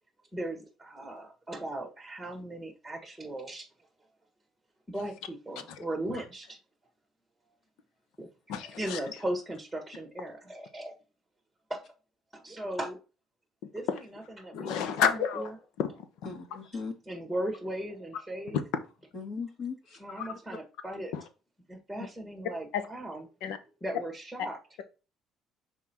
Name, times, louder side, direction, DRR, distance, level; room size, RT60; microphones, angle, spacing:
voice 1, 0.3-3.6 4.9-6.6 8.2-8.3 8.8-10.9 11.7-11.8 12.3-13.0 13.7-13.9 14.4-14.9 15.4-15.5 17.1-18.6 20.0-21.1 21.7-23.2 23.8-24.6, right 1 dB, ahead, 1.5 m, -37 dB
voice 2, 5.7-6.2 8.5-9.2 13.6-14.0 14.5-16.1 18.5-18.6 20.2-20.3 21.1-21.2 22.7-22.9 23.4-23.6, left 7 dB, 85° left, 1.1 m, -31 dB
voice 3, 16.2-16.9 19.1-20.0, left 5 dB, 50° left, 2.1 m, -38 dB
6.2 x 4.4 x 4.4 m
cardioid pair, 145°, 0 cm